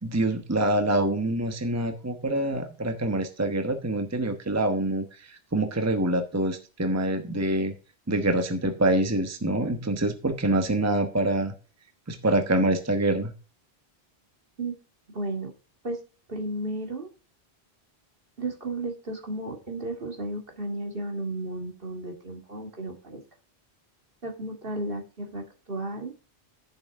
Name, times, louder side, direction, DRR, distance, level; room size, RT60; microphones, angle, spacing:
voice 1, 0.0-7.7 8.1-11.5 12.1-13.3, right 1 dB, 15° right, 7 dB, 1.1 m, -25 dB
voice 2, 15.1-15.5 15.8-16.0 16.3-17.1 18.4-23.2 24.2-26.1, right 2 dB, 55° right, 2 dB, 2.4 m, -33 dB
10.5 x 8.5 x 3.6 m, 0.36 s
omnidirectional pair, 1.1 m